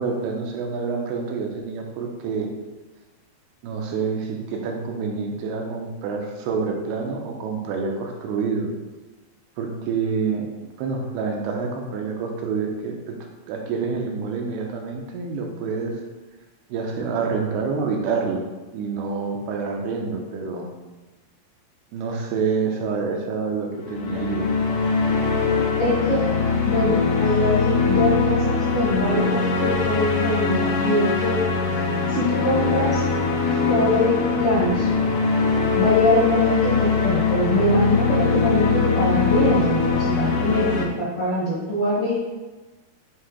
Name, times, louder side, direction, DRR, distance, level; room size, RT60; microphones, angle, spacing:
voice 1, 0.0-2.5 3.6-8.7 9.6-10.5 10.8-13.2 13.5-16.0 16.7-18.4 18.7-20.7 21.9-24.5, right 5 dB, 90° right, 1 dB, 2.7 m, -27 dB
sound 1, 23.9-40.9, left 4 dB, 75° left, 2.0 m, -22 dB
voice 2, 25.8-26.3 26.6-31.4 32.1-33.0 33.7-34.9 35.7-42.1, left 1 dB, 55° left, -9 dB, 1.5 m, -23 dB
7.6 x 2.8 x 4.9 m, 1.2 s
omnidirectional pair, 4.6 m